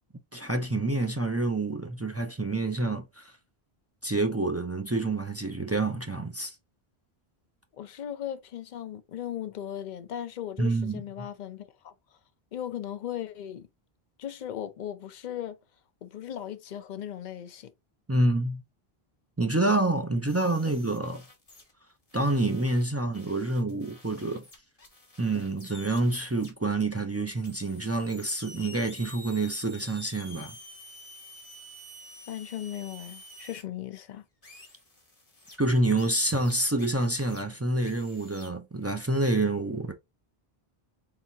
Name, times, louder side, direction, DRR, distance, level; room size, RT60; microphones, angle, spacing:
voice 1, 0.3-3.3 4.0-6.6 10.6-11.3 18.1-18.6 19.4-21.2 22.1-24.4 25.2-30.6 35.6-39.9, right 2 dB, 25° right, 0.4 m, -27 dB
voice 2, 7.8-11.9 12.5-13.7 14.2-15.6 16.0-17.7 32.3-34.2, left 10 dB, 55° left, 0.7 m, -37 dB
sound 1, 20.3-21.7 22.1-26.5 27.4-33.6 34.4-35.6 36.0-37.4 37.8-38.5, left 1 dB, 35° left, 1.4 m, -50 dB
3.8 x 3.6 x 2.7 m
omnidirectional pair, 1.0 m